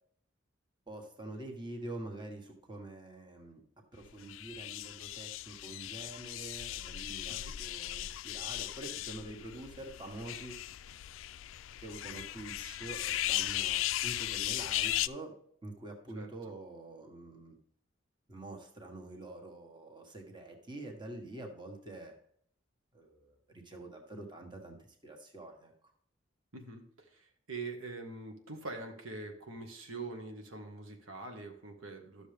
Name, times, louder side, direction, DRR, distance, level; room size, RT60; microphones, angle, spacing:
voice 1, 0.9-3.6 3.9-10.6 11.8-15.3 15.6-17.6 18.3-22.1 22.9-25.7, right 2 dB, 25° right, 2 dB, 1.4 m, -46 dB
sound 1, 4.2-15.1, left 14 dB, 75° left, 0.3 m, -37 dB
voice 2, 26.5-32.3, right 3 dB, 85° right, 3 dB, 1.5 m, -44 dB
12.0 x 6.7 x 3.4 m, 0.63 s
head